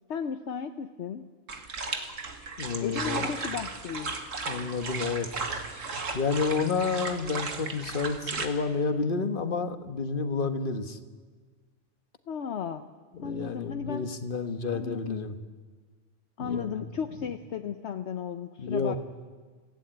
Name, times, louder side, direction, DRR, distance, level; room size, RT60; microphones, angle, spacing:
voice 1, 0.1-1.3 2.8-4.2 12.3-12.9 13.2-14.1 14.7-15.3 16.4-19.0, left 7 dB, 65° left, 8 dB, 1.1 m, -35 dB
sound 1, 1.5-8.5, right 4 dB, 85° right, 2.1 m, -35 dB
voice 2, 2.6-3.3 4.5-5.4 6.1-11.0 13.1-15.4 16.4-16.8 18.6-19.0, left 4 dB, 45° left, 8 dB, 1.4 m, -30 dB
25.5 x 16.0 x 8.9 m, 1.5 s
omnidirectional pair, 1.3 m